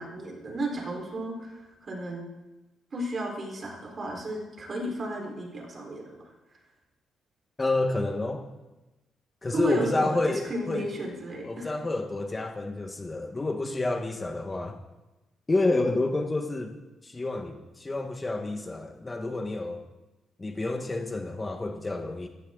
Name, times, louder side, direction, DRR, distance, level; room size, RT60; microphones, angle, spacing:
voice 1, 0.0-2.2 2.9-6.2 9.5-10.2 10.5-11.7, right 1 dB, 40° right, 1 dB, 4.4 m, -33 dB
voice 2, 7.6-8.5 9.4-10.9 11.4-14.8 15.5-16.7 17.0-19.8 20.4-22.3, left 2 dB, 20° left, 4 dB, 1.4 m, -29 dB
16.5 x 14.0 x 3.9 m, 1.1 s
cardioid pair, 90°, 0 cm